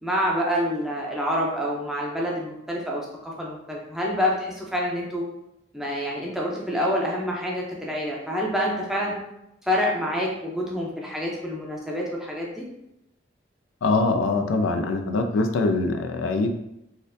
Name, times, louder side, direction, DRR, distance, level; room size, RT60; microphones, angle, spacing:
voice 1, 0.0-5.3 5.7-9.1 9.6-12.7, equal, ahead, -3 dB, 0.5 m, -27 dB
voice 2, 13.8-16.5, left 3 dB, 80° left, 6 dB, 0.4 m, -23 dB
4.1 x 2.5 x 2.6 m, 0.83 s
head